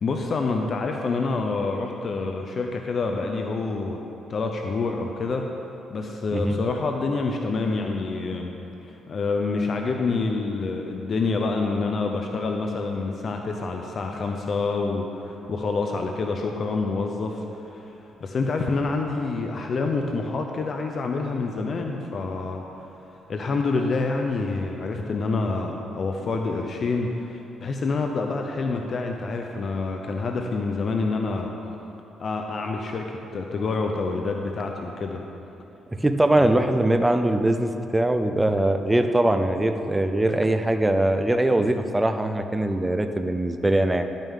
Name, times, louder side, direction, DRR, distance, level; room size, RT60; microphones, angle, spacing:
voice 1, 0.0-4.0 4.3-5.4 5.9-8.5 8.8-22.6 23.3-31.5 32.2-35.2 36.4-36.5, left 3 dB, 40° left, 3 dB, 0.6 m, -27 dB
voice 2, 36.0-44.0, right 1 dB, 10° right, 7 dB, 0.4 m, -22 dB
11.0 x 9.0 x 3.6 m, 2.9 s
cardioid pair, 145°, 0 cm